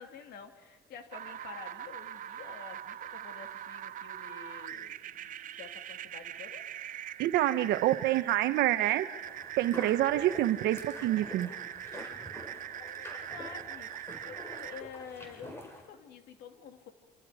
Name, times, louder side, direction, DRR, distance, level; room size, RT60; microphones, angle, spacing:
voice 1, 0.0-5.3 5.6-6.6 12.8-13.9 14.2-16.9, left 7 dB, 70° left, 5 dB, 2.6 m, -49 dB
sound 1, 1.1-14.8, right 11 dB, 50° right, 0.6 m, -42 dB
voice 2, 7.2-9.1 9.6-11.5, right 14 dB, 80° right, 12 dB, 1.1 m, -27 dB
sound 2, 9.2-15.8, equal, 15° left, 4.7 m, -47 dB
28.5 x 26.0 x 5.0 m, 1.4 s
cardioid pair, 110°, 17 cm